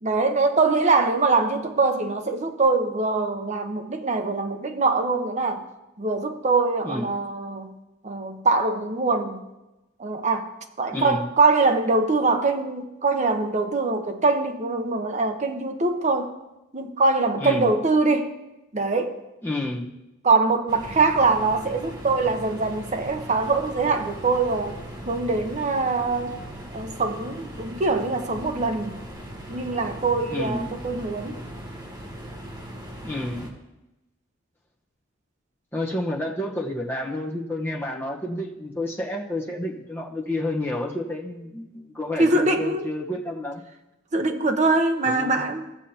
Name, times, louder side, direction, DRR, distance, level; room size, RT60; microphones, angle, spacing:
voice 1, 0.0-5.6 6.0-7.7 8.0-9.4 10.0-10.5 10.8-16.3 16.7-18.3 18.7-19.2 20.2-24.8 25.1-26.4 26.7-29.0 29.5-31.4 42.2-42.8 44.1-45.6, right 3 dB, 35° right, 5 dB, 0.9 m, -23 dB
voice 2, 10.9-11.3 17.4-17.7 19.4-19.9 30.3-30.7 33.0-33.5 35.7-43.6 45.1-45.4, left 1 dB, 10° left, -3 dB, 1.1 m, -30 dB
sound 1, 20.7-33.5, equal, 20° right, 1.3 m, -39 dB
16.5 x 7.2 x 2.9 m, 0.97 s
head